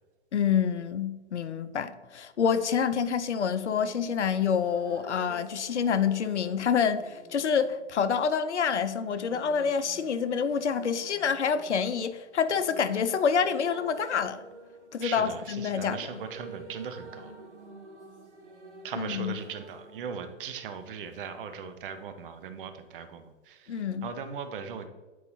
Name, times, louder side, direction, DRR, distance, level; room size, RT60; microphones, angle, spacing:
voice 1, 0.3-14.4 14.9-16.0 19.0-19.3 23.7-24.1, left 7 dB, 75° left, 0.5 m, -27 dB
sound 1, 3.4-21.3 22.5-22.6, right 2 dB, 70° right, 1.2 m, -50 dB
voice 2, 15.0-17.3 18.8-24.9, right 6 dB, 50° right, 0.8 m, -39 dB
8.1 x 4.6 x 2.6 m
figure-of-eight pair, 110°, 35 cm